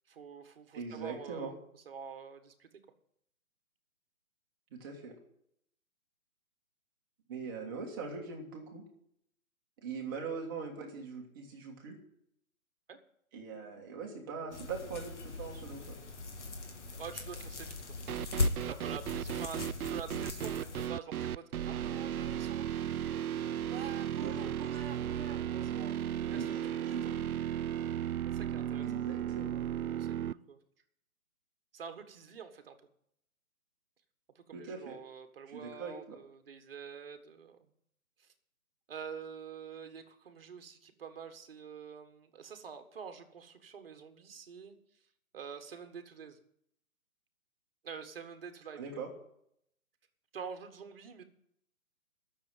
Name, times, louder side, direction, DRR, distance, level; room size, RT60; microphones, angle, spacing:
voice 1, 0.1-2.7 12.9-13.0 17.0-17.9 18.2-23.2 23.7-27.3 28.2-29.0 29.9-30.6 31.7-32.8 34.3-37.7 38.2-38.3 38.9-44.8 45.3-46.4 47.8-48.8 50.3-51.2, right 6 dB, 40° right, 8 dB, 1.6 m, -47 dB
voice 2, 0.7-1.5 4.7-5.1 7.3-8.8 9.8-12.0 13.3-16.0 24.2-24.5 26.3-26.6 26.9-27.1 28.8-29.6 34.5-34.9 35.5-36.2 48.8-49.1, right 5 dB, 15° right, 0 dB, 1.6 m, -41 dB
sound 1, 14.5-20.9, left 3 dB, 55° left, 2.1 m, -39 dB
sound 2, 18.1-30.3, right 10 dB, 90° right, 0.5 m, -35 dB
12.0 x 6.9 x 9.1 m, 0.73 s
hypercardioid pair, 165°, 43 cm